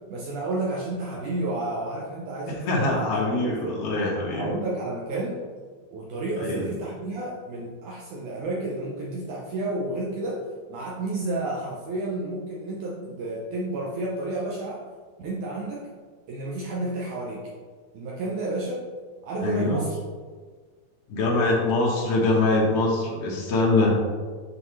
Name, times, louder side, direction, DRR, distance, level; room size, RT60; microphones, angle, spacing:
voice 1, 0.1-3.8 4.3-5.4 5.9-10.4 10.7-14.8 15.2-15.8 16.3-17.4 17.9-18.8 19.2-20.0, right 2 dB, 80° right, -4 dB, 1.8 m, -31 dB
voice 2, 2.5-4.5 6.4-6.7 19.4-19.8 21.1-24.0, left 2 dB, 65° left, -3 dB, 1.5 m, -23 dB
7.7 x 5.4 x 3.2 m, 1.5 s
omnidirectional pair, 4.6 m